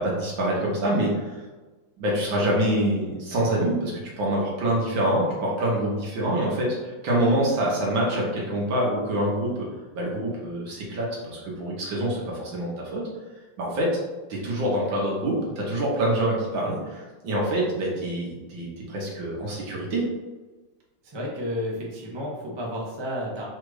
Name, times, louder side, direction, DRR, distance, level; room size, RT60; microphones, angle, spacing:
voice 1, 0.0-1.4 2.0-9.7 9.9-13.0 13.6-14.0 14.3-20.1, right 1 dB, 70° right, -3 dB, 1.9 m, -26 dB
voice 2, 21.0-23.5, equal, 40° right, -3 dB, 0.3 m, -31 dB
4.2 x 2.5 x 4.8 m, 1.2 s
omnidirectional pair, 2.2 m